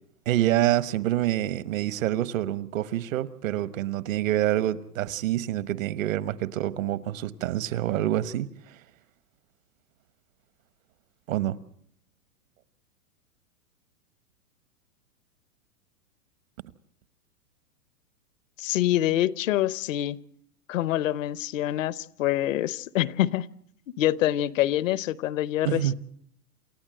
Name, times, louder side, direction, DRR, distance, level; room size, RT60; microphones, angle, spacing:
voice 1, 0.3-8.7 11.3-11.6 25.6-25.9, right 13 dB, 60° right, 1.2 m, -27 dB
voice 2, 18.6-20.2 20.7-23.5 24.0-25.9, left 13 dB, 60° left, 0.9 m, -26 dB
28.5 x 13.5 x 7.7 m
hypercardioid pair, 125°, 45 cm